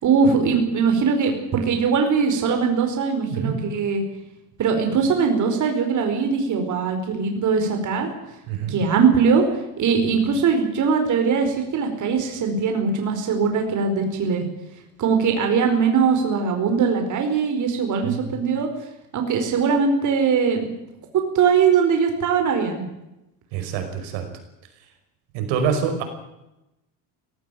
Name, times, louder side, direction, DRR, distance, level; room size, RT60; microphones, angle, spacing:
voice 1, 0.0-4.0 4.6-8.1 8.7-9.4 9.8-14.4 15.0-18.7 19.1-20.7 21.3-22.8, right 5 dB, 40° right, 4 dB, 4.8 m, -21 dB
voice 2, 3.3-3.6 8.5-8.8 18.0-18.5 23.5-24.3 25.3-26.0, right 7 dB, 75° right, 6 dB, 5.6 m, -26 dB
18.0 x 18.0 x 9.3 m, 0.93 s
cardioid pair, 140°, 44 cm